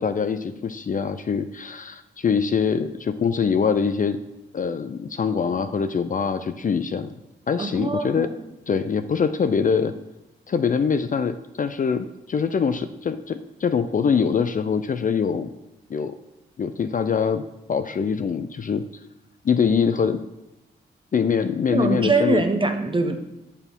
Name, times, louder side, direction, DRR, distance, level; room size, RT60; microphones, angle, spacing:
voice 1, 0.0-4.2 4.5-7.1 7.5-8.3 8.7-9.9 10.5-15.5 15.9-16.2 16.6-17.4 17.7-18.8 19.4-20.2 21.1-22.4, left 6 dB, 40° left, 10 dB, 0.4 m, -23 dB
voice 2, 7.6-8.3 21.7-23.2, right 3 dB, 25° right, 6 dB, 1.1 m, -23 dB
6.9 x 4.5 x 5.2 m, 0.93 s
supercardioid pair, 45°, 20 cm